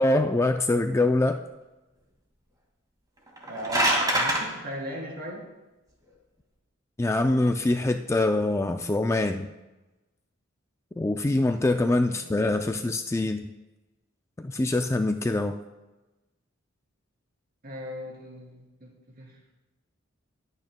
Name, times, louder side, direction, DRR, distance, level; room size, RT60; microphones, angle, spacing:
voice 1, 0.0-1.4 7.0-9.5 11.0-13.5 14.4-15.6, left 2 dB, 15° left, 6 dB, 0.3 m, -24 dB
sound 1, 3.3-4.4, right 1 dB, 20° right, 2.0 m, -24 dB
voice 2, 3.5-5.5 12.1-12.2 17.6-19.4, equal, 45° right, -2 dB, 3.0 m, -38 dB
20.5 x 9.0 x 2.2 m, 1.1 s
head